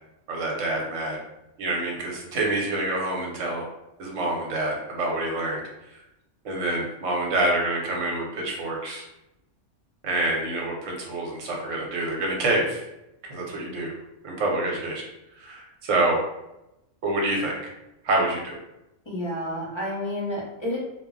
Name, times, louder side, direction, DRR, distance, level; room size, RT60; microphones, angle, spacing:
voice 1, 0.3-1.2 1.6-3.7 4.0-5.6 5.9-6.0 6.4-9.0 10.0-12.8 13.2-14.0 14.2-15.1 15.4-16.2 17.0-17.7 18.0-18.6, right 2 dB, 80° right, -1 dB, 1.1 m, -27 dB
voice 2, 19.1-20.8, left 1 dB, 25° left, -6 dB, 0.7 m, -30 dB
2.2 x 2.0 x 3.7 m, 0.90 s
omnidirectional pair, 1.3 m